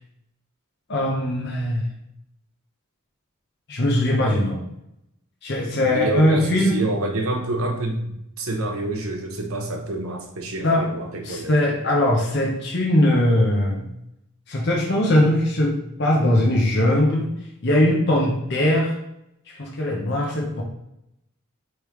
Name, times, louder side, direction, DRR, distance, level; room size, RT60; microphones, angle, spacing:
voice 1, 0.9-1.9 3.7-4.6 5.4-6.8 10.6-10.9 11.2-13.9 14.5-17.3 17.6-19.0 19.5-20.6, left 1 dB, 50° left, -1 dB, 0.8 m, -20 dB
voice 2, 5.7-11.9, right 2 dB, 80° right, 2 dB, 0.9 m, -28 dB
5.2 x 3.3 x 3.1 m, 0.81 s
head